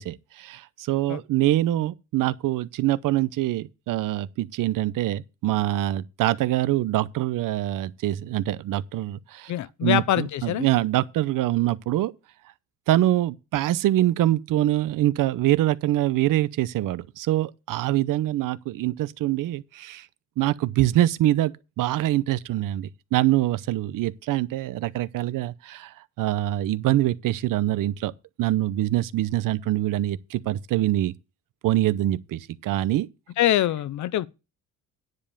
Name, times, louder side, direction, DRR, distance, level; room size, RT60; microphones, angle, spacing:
voice 1, 0.0-9.5 9.8-12.1 12.9-20.1 20.4-28.1 28.4-31.1 31.6-33.1, right 14 dB, 75° right, 0.7 m, -24 dB
voice 2, 9.5-10.7 33.4-34.3, left 13 dB, 60° left, 0.6 m, -24 dB
9.9 x 5.2 x 6.9 m
cardioid pair, 120°, 33 cm